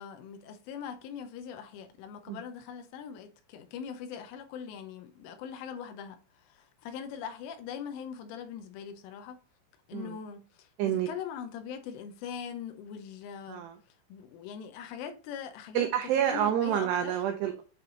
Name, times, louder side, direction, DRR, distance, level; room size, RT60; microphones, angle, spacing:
voice 1, 0.0-9.4 9.9-13.6 14.1-15.9 16.3-17.1, left 7 dB, 80° left, 3.4 m, -41 dB
voice 2, 15.7-17.6, right 10 dB, 85° right, 2.4 m, -28 dB
9.5 x 3.4 x 4.0 m
omnidirectional pair, 5.7 m